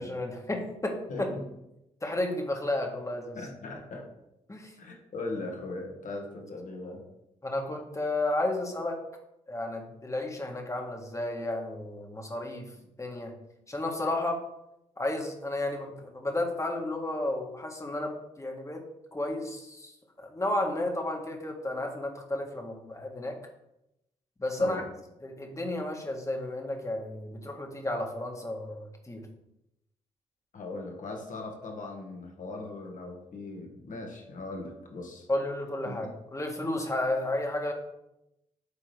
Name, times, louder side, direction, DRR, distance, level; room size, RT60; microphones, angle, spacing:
voice 1, 0.0-1.3 2.0-3.4 4.5-4.7 7.4-9.0 9.5-12.7 13.0-13.3 13.7-14.4 15.0-18.8 19.1-19.9 20.2-23.4 24.4-24.8 25.2-29.3 35.3-37.7, left 1 dB, 20° left, 2 dB, 1.8 m, -32 dB
voice 2, 1.1-1.5 3.3-4.1 4.8-7.1 24.6-24.9 30.5-35.3 35.9-36.1, left 2 dB, 55° left, 2 dB, 1.8 m, -39 dB
9.8 x 3.8 x 3.4 m, 0.86 s
hypercardioid pair, 45°, 16 cm